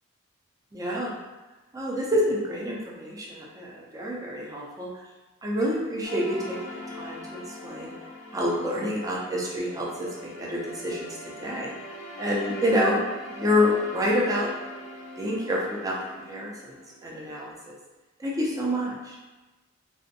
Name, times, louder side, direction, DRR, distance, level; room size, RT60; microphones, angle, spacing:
voice 1, 0.7-1.2 1.7-4.9 5.4-7.9 8.3-11.1 11.4-11.7 12.2-13.0 13.3-14.5 15.2-16.7 17.0-17.8 18.2-19.1, left 1 dB, 15° right, -4 dB, 0.4 m, -28 dB
sound 1, 6.0-17.3, left 1 dB, 85° left, 0.4 m, -42 dB
2.5 x 2.1 x 2.6 m, 1.2 s
head